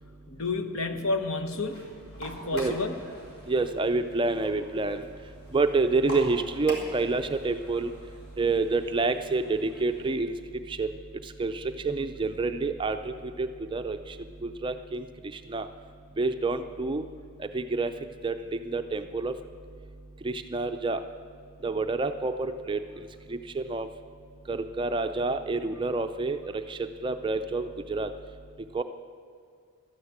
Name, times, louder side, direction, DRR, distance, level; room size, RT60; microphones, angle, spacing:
voice 1, 0.3-1.8 2.2-3.0, left 3 dB, 70° left, 8 dB, 1.0 m, -30 dB
sound 1, 1.7-10.1, equal, 45° left, 2.5 m, -45 dB
voice 2, 3.5-5.0 5.5-7.9 8.4-10.3 10.7-10.9 11.4-14.0 14.4-15.0 15.5-15.7 16.2-17.1 17.4-17.9 18.2-19.4 20.2-21.0 21.6-22.8 23.3-23.9 24.5-28.1 28.7-28.8, right 3 dB, 20° right, 8 dB, 0.4 m, -28 dB
12.5 x 9.8 x 7.3 m, 2.3 s
head